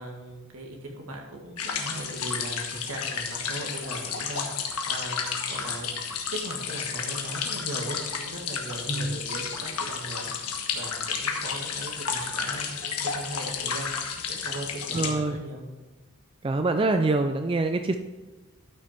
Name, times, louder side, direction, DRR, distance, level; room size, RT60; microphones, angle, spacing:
voice 1, 0.0-13.9 14.3-15.6, right 1 dB, 75° right, 0 dB, 2.1 m, -38 dB
sound 1, 1.6-15.1, left 6 dB, 85° left, 1.3 m, -32 dB
voice 2, 14.9-15.4 16.4-18.0, right 2 dB, 25° right, 7 dB, 0.4 m, -25 dB
12.5 x 6.1 x 4.5 m, 1.2 s
head